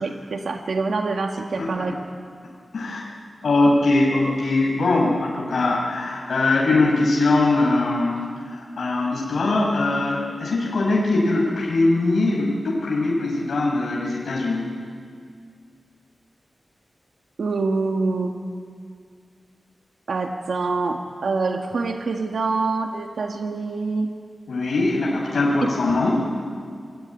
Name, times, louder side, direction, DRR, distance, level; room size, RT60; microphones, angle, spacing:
voice 1, 0.0-2.0 17.4-18.3 20.1-24.1 25.6-25.7, right 3 dB, 70° right, 3 dB, 1.8 m, -25 dB
voice 2, 2.7-3.0 3.4-8.2 8.5-14.6 24.5-26.3, left 2 dB, 70° left, -3 dB, 5.5 m, -21 dB
26.5 x 22.0 x 9.5 m, 2.1 s
wide cardioid pair, 130°, 0 cm